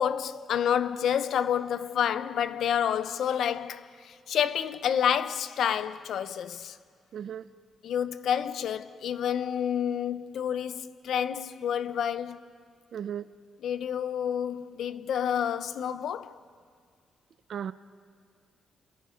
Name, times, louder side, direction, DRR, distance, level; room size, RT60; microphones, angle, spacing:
voice 1, 0.0-6.8 7.8-12.4 13.6-16.4, left 9 dB, 75° left, 0.8 m, -29 dB
voice 2, 7.1-7.4 12.9-13.2 17.5-17.7, right 9 dB, 65° right, 0.7 m, -35 dB
29.0 x 28.5 x 5.2 m
cardioid pair, 90°, 0 cm